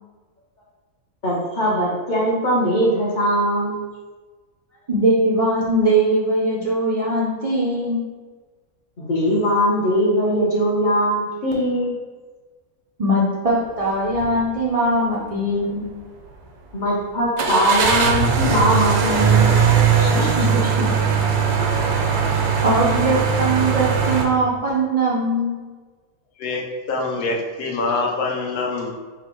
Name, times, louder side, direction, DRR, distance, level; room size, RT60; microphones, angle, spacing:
voice 1, 1.2-3.8 9.0-11.9 16.7-19.5 19.9-20.2 20.5-20.7, equal, 45° left, -4 dB, 0.7 m, -21 dB
voice 2, 4.9-8.0 13.0-15.8 20.1-20.9 22.6-25.5, right 1 dB, 65° right, -7 dB, 0.3 m, -21 dB
sound 1, 14.1-14.3 14.8-14.9 17.4-24.2, right 6 dB, 85° right, 1.1 m, -19 dB
voice 3, 21.8-22.7 26.4-26.6 26.9-28.9, left 3 dB, 80° left, -1 dB, 1.1 m, -26 dB
3.9 x 2.1 x 4.4 m, 1.4 s
omnidirectional pair, 1.5 m